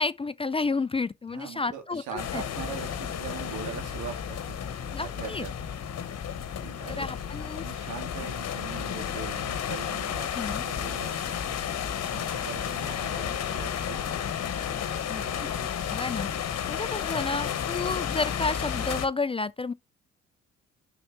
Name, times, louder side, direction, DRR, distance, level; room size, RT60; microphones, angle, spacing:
voice 1, 0.0-2.0 2.3-2.4 4.9-5.5 6.9-7.6 10.3-10.6 15.1-15.5 15.9-16.3 16.7-19.7, left 3 dB, 20° left, 0.4 m, -31 dB
voice 2, 1.3-5.5 6.6-7.1 7.6-11.4 12.1-14.2 15.3-15.5, right 8 dB, 80° right, 2.0 m, -41 dB
sound 1, 2.2-19.1, left 8 dB, 60° left, 1.2 m, -32 dB
5.7 x 3.8 x 4.6 m
supercardioid pair, 65°, 30 cm